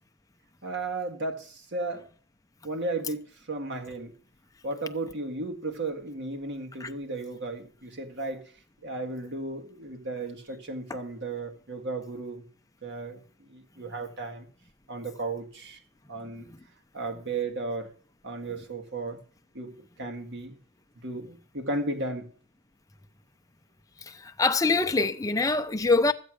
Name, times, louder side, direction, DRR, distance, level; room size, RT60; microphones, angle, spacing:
voice 1, 0.6-2.1 2.6-4.1 4.6-8.5 8.8-12.4 12.8-14.5 14.9-15.8 16.1-16.5 16.9-17.9 18.2-19.2 19.5-20.6 21.0-22.3, right 2 dB, 50° right, 1.9 m, -34 dB
voice 2, 24.1-26.1, left 3 dB, 15° left, 0.6 m, -24 dB
14.0 x 8.0 x 6.4 m
head